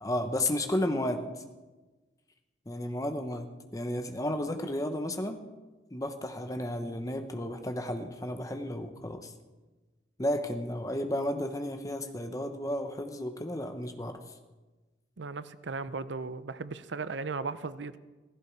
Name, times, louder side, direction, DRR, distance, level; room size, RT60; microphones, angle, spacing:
voice 1, 0.0-1.2 2.7-5.4 5.9-9.3 10.2-14.2, left 1 dB, 20° left, 1.1 m, -33 dB
voice 2, 15.2-18.0, right 4 dB, 75° right, 0.7 m, -36 dB
16.5 x 15.0 x 4.7 m
head